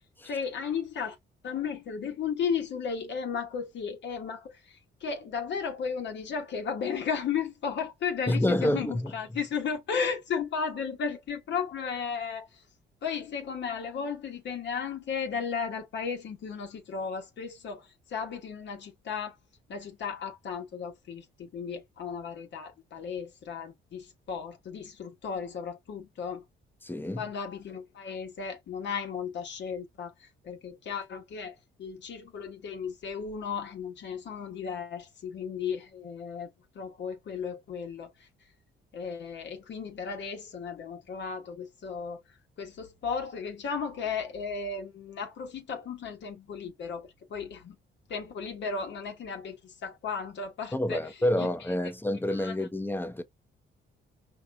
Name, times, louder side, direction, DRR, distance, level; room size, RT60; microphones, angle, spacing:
voice 1, 0.2-1.2 1.4-4.5 5.0-12.5 13.0-19.3 19.7-26.4 27.2-30.1 30.4-36.5 36.7-38.1 38.9-42.2 42.6-47.7 48.1-51.1 51.4-51.5 52.4-52.5, left 6 dB, 65° left, 1.3 m, -35 dB
voice 2, 8.3-9.1 26.8-27.2 50.7-53.2, left 1 dB, 10° left, 0.7 m, -28 dB
4.7 x 3.0 x 2.3 m
cardioid pair, 90°, 20 cm